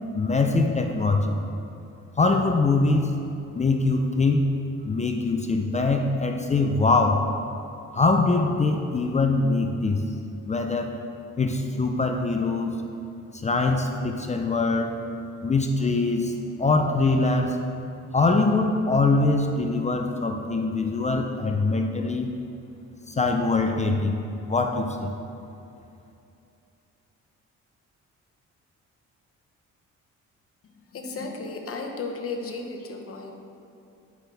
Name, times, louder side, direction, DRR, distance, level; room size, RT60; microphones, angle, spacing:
voice 1, 0.1-1.4 2.2-3.2 3.5-4.5 4.8-7.3 7.9-10.0 10.5-10.9 11.4-12.8 13.3-15.0 15.4-16.3 16.6-17.6 18.1-22.3 23.1-24.2 24.5-25.1, left 3 dB, 25° left, 4 dB, 0.5 m, -23 dB
voice 2, 30.8-33.3, left 3 dB, 50° left, 3 dB, 0.9 m, -34 dB
8.1 x 5.9 x 3.4 m, 2.7 s
cardioid pair, 90°, 30 cm